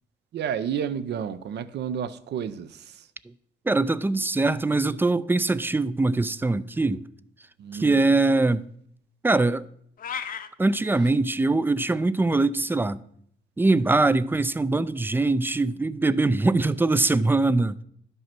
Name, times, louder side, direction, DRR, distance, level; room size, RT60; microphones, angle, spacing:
voice 1, 0.3-3.1 7.6-8.0, right 8 dB, 65° right, 0.7 m, -31 dB
voice 2, 3.7-7.0 7.7-8.7 9.2-9.7 10.6-13.0 13.6-17.8, right 2 dB, 10° right, 0.4 m, -22 dB
sound 1, 10.0-10.5, left 7 dB, 50° left, 0.8 m, -33 dB
11.0 x 5.6 x 5.9 m
cardioid pair, 95°, 18 cm